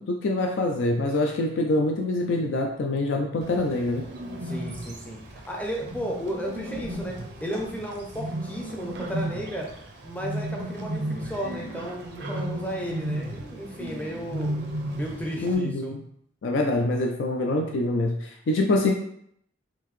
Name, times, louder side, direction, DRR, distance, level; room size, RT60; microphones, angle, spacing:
voice 1, 0.0-4.0 15.4-16.0 16.4-18.9, left 2 dB, 65° left, 1 dB, 0.4 m, -25 dB
Bird, 3.4-15.6, right 1 dB, 55° right, 0.5 m, -34 dB
voice 2, 4.4-7.1 7.4-9.7 10.0-14.5 14.9-15.9, equal, 10° left, -1 dB, 0.5 m, -34 dB
3.7 x 2.7 x 3.1 m, 0.70 s
head